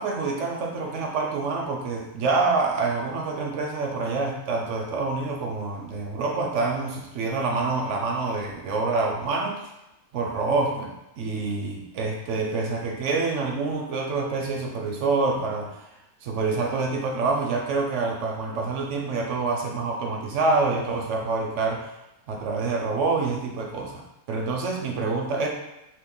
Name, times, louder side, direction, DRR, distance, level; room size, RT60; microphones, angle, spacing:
voice 1, 0.0-9.6 10.1-15.8 16.2-21.9 22.3-25.5, right 3 dB, 65° right, 1 dB, 0.8 m, -27 dB
2.8 x 2.5 x 3.7 m, 0.91 s
omnidirectional pair, 1.5 m